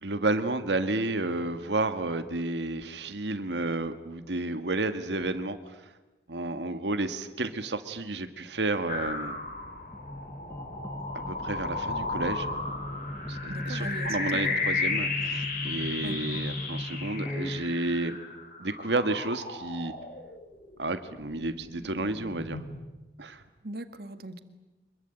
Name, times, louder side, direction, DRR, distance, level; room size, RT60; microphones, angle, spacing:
voice 1, 0.0-5.9 6.3-9.5 11.3-12.5 13.3-18.2 18.6-19.9 20.8-22.6 23.2-23.4, right 2 dB, 85° right, 9 dB, 1.7 m, -31 dB
sound 1, 8.9-20.7 21.2-22.8, left 3 dB, 50° left, 5.2 m, -34 dB
sound 2, 9.9-17.6, left 1 dB, 15° left, 1.0 m, -37 dB
voice 2, 13.5-14.6 16.0-16.2 23.6-24.4, right 1 dB, 60° right, 10 dB, 1.9 m, -39 dB
26.0 x 22.5 x 9.0 m, 1.1 s
head